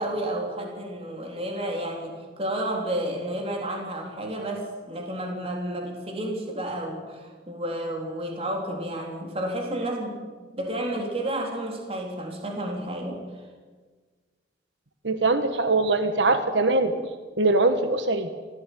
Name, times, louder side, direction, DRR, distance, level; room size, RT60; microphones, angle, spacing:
voice 1, 0.0-13.2, right 1 dB, 35° right, 1 dB, 3.9 m, -31 dB
voice 2, 15.0-16.9 17.4-18.3, right 2 dB, 85° right, 8 dB, 1.4 m, -22 dB
25.0 x 17.0 x 9.3 m, 1.4 s
head